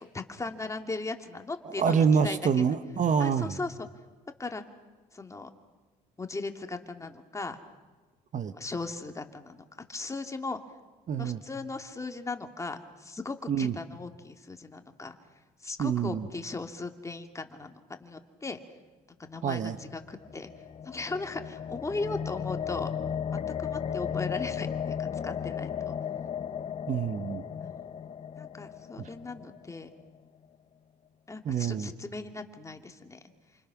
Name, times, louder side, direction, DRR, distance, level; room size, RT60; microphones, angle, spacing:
voice 1, 0.1-1.9 2.2-2.7 3.2-3.9 4.4-4.6 5.1-5.5 6.2-7.6 8.5-9.6 9.9-10.6 11.2-15.2 15.6-18.6 19.2-20.5 20.8-22.9 23.6-25.9 27.6-27.9 28.4-29.9 31.3-33.2, left 3 dB, 20° left, 6 dB, 2.5 m, -37 dB
voice 2, 1.8-3.6 8.3-8.5 11.1-11.4 13.5-13.7 15.8-16.3 19.4-19.8 26.9-27.4 29.0-29.1 31.4-31.9, right 6 dB, 45° right, 11 dB, 1.4 m, -26 dB
sound 1, 19.8-30.0, left 8 dB, 35° left, 0.7 m, -35 dB
29.0 x 27.5 x 6.2 m, 1.3 s
cardioid pair, 110°, 17 cm